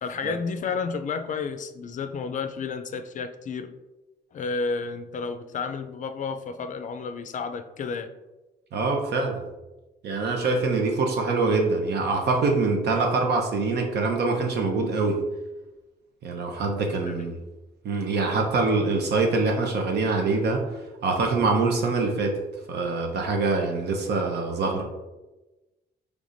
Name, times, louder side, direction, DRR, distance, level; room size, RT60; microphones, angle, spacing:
voice 1, 0.0-3.8 4.3-8.1 17.1-17.3, left 5 dB, 50° left, 8 dB, 0.4 m, -31 dB
voice 2, 8.7-9.4 10.0-15.2 16.2-17.3 17.8-20.6 21.0-22.4 22.7-24.8, right 3 dB, 75° right, 2 dB, 0.8 m, -24 dB
4.9 x 3.4 x 2.6 m, 1.1 s
cardioid pair, 125°, 17 cm